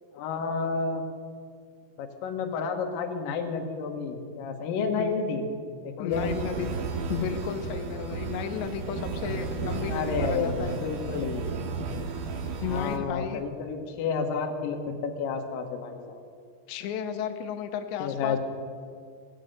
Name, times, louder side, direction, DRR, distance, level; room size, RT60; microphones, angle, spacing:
voice 1, 0.1-1.0 2.0-5.4 5.8-6.3 9.9-11.5 12.6-16.2 18.0-18.4, left 5 dB, 65° left, 3 dB, 2.4 m, -30 dB
voice 2, 6.0-6.8 7.1-10.8 12.6-13.4 16.7-18.4, left 8 dB, 90° left, 7 dB, 3.0 m, -33 dB
sound 1, 6.1-13.0, right 4 dB, 75° right, 2.0 m, -33 dB
17.0 x 8.3 x 7.9 m, 2.2 s
omnidirectional pair, 5.1 m